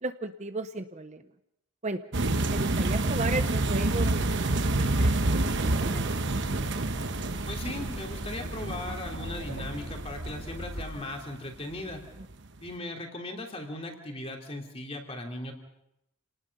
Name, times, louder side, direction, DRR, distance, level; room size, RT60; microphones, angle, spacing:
voice 1, 0.0-1.2 1.8-2.0 2.5-6.2, right 2 dB, 30° right, 9 dB, 0.8 m, -35 dB
sound 1, 2.1-11.2 11.7-11.9 12.2-12.3, right 2 dB, 55° right, 1.1 m, -28 dB
sound 2, 5.4-10.8, equal, 75° right, 3.3 m, -39 dB
voice 2, 7.5-12.0 12.6-15.5, left 2 dB, 25° left, 2 dB, 3.2 m, -38 dB
28.5 x 19.0 x 5.4 m, 0.84 s
head